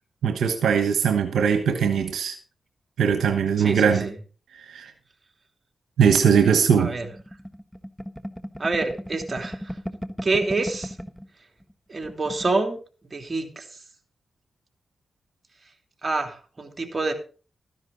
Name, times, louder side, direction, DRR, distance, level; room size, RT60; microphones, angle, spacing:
voice 1, 0.2-2.4 3.0-4.1 4.5-4.9 6.0-6.9, right 7 dB, 85° right, 6 dB, 1.2 m, -20 dB
voice 2, 3.6-4.1 6.8-7.1 8.6-9.8 10.2-10.9 11.9-12.8 13.1-13.6 16.0-17.1, right 3 dB, 40° right, 4 dB, 3.2 m, -27 dB
sound 1, 6.9-11.3 11.6-11.7 12.0-12.6, equal, 5° left, 1.3 m, -36 dB
13.5 x 10.5 x 4.1 m, 0.38 s
supercardioid pair, 45°, 0 cm